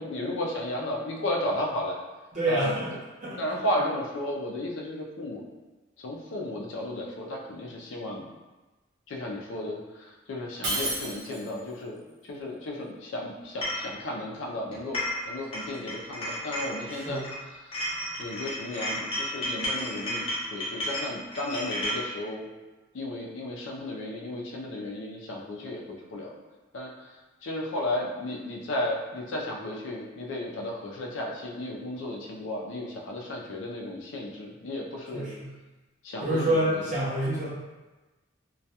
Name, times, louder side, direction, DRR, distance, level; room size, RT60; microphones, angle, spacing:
voice 1, 0.0-2.0 2.5-2.7 3.4-5.4 6.0-8.3 9.1-17.2 17.5-17.8 18.2-22.5 22.9-26.3 26.7-35.3 36.0-36.8, left 1 dB, 80° left, -1 dB, 0.4 m, -34 dB
voice 2, 2.3-2.9 3.2-3.4 16.9-17.3 35.1-35.5 36.2-37.5, right 1 dB, 40° right, -6 dB, 0.6 m, -27 dB
Shatter, 10.6-11.7, right 2 dB, 75° right, 0.8 m, -31 dB
sound 1, 13.6-13.8 14.7-15.3 15.5-17.4 17.7-22.0, equal, 30° left, 0.6 m, -32 dB
2.3 x 2.2 x 2.7 m, 1.2 s
head